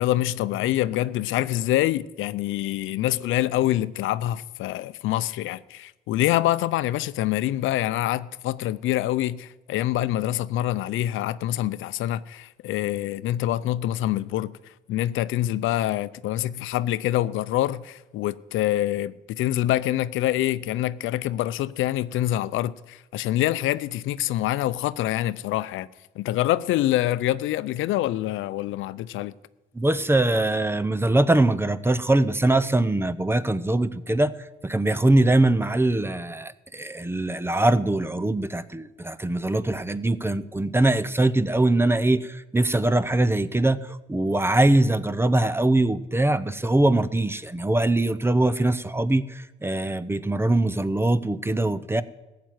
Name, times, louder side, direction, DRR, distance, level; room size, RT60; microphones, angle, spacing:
voice 1, 0.0-14.5 14.9-25.9 26.2-29.3, left 14 dB, 85° left, 0.5 m, -25 dB
voice 2, 29.8-34.3 34.6-52.0, right 2 dB, 10° right, 0.7 m, -22 dB
15.0 x 7.6 x 9.3 m
cardioid pair, 90°, 20 cm